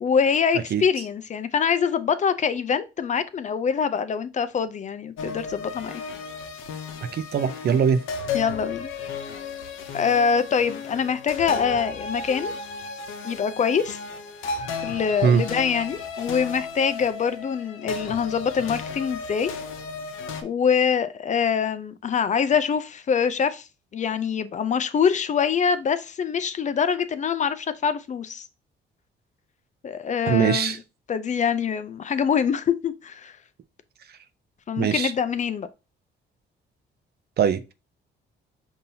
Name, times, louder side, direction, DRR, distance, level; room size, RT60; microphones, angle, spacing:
voice 1, 0.0-6.0 8.3-8.9 9.9-12.5 13.2-14.0 14.8-19.5 20.4-23.6 23.9-28.4 29.8-30.7 31.1-33.3 34.7-35.7, left 6 dB, 40° left, 0.4 m, -24 dB
sound 1, 5.2-20.4, left 4 dB, 85° left, 0.6 m, -34 dB
voice 2, 7.1-8.0 15.2-15.4 30.3-30.8 34.8-35.1 37.4-37.7, right 7 dB, 55° right, 0.5 m, -21 dB
5.4 x 2.7 x 2.7 m
cardioid pair, 90°, 20 cm